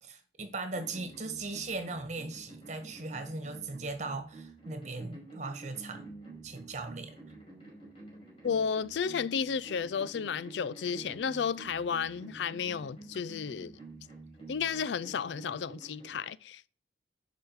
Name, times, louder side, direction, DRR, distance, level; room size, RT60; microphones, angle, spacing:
voice 1, 0.0-6.1 6.4-7.1, right 3 dB, 40° right, 1.6 m, -38 dB
sound 1, 0.7-16.1, right 3 dB, 30° left, 5.0 m, -49 dB
voice 2, 8.4-13.7 14.5-16.7, left 6 dB, 75° left, 0.4 m, -33 dB
11.0 x 5.0 x 4.7 m
head